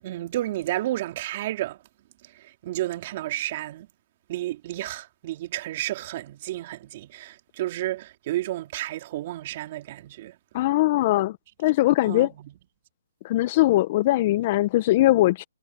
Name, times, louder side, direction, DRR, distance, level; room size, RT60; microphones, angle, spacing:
voice 1, 0.0-1.8 2.3-3.9 4.3-10.4 12.0-12.5, right 15 dB, 35° right, 2.9 m, -31 dB
voice 2, 10.5-11.4 11.6-12.3 13.2-15.4, left 16 dB, 35° left, 0.9 m, -21 dB
hypercardioid pair, 150°, 0 cm